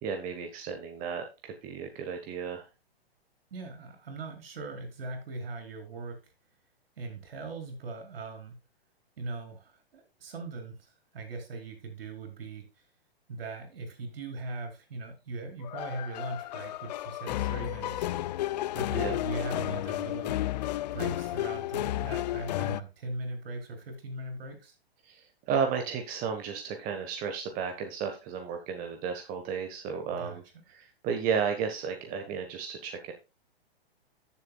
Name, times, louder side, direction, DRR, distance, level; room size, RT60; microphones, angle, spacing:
voice 1, 0.0-2.6 19.0-19.1 25.0-30.4 30.7-33.1, right 6 dB, 30° right, 5 dB, 1.3 m, -33 dB
voice 2, 3.5-6.3 7.0-8.6 9.2-12.9 13.3-18.1 18.7-20.4 20.9-24.8 30.1-30.6, right 3 dB, 65° right, 5 dB, 4.4 m, -40 dB
sound 1, 15.6-22.8, left 14 dB, 45° left, 0.4 m, -32 dB
14.5 x 7.2 x 2.3 m, 0.27 s
hypercardioid pair, 120°, 31 cm